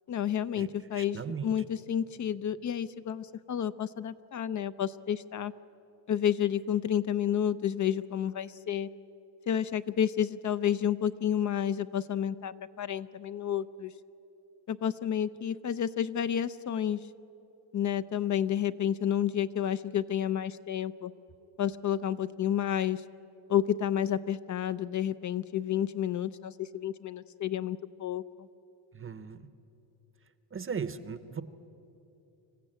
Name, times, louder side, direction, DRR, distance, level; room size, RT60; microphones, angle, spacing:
voice 1, 0.1-5.5 6.1-8.9 9.5-13.9 14.7-17.1 17.7-21.1 21.6-23.0 23.5-28.5, left 9 dB, 40° left, 14 dB, 0.5 m, -30 dB
voice 2, 0.9-1.5 28.9-29.5 30.5-31.4, right 6 dB, 25° right, 12 dB, 0.8 m, -37 dB
26.0 x 14.5 x 8.8 m, 2.9 s
cardioid pair, 115°, 50 cm